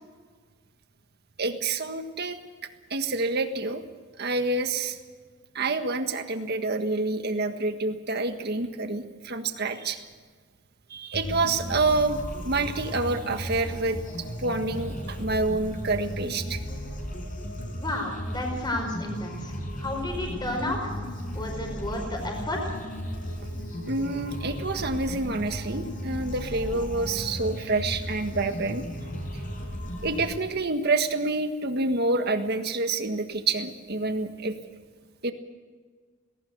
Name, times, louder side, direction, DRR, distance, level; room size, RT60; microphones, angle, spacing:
voice 1, 1.4-2.4 2.9-3.8 4.2-5.0 5.5-10.0 10.9-12.2 12.4-14.0 14.4-16.6 23.9-28.8 30.0-34.5 35.2-35.3, right 3 dB, 55° right, 7 dB, 1.6 m, -27 dB
sound 1, 11.1-30.3, equal, 45° left, 4.8 m, -35 dB
voice 2, 17.8-20.8 21.0-22.8, left 1 dB, 20° left, 2 dB, 4.9 m, -32 dB
19.0 x 18.0 x 8.1 m, 1.5 s
head